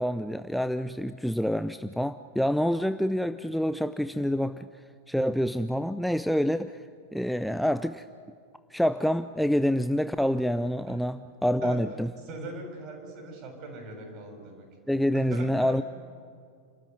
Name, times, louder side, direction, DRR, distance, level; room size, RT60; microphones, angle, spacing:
voice 1, 0.0-4.7 5.1-6.8 7.1-8.0 8.7-12.1 14.9-15.8, equal, ahead, 11 dB, 0.5 m, -27 dB
voice 2, 12.2-14.7 15.1-15.8, right 2 dB, 40° right, 3 dB, 6.8 m, -40 dB
29.5 x 13.5 x 9.5 m, 2.2 s
figure-of-eight pair, 90°, 0 cm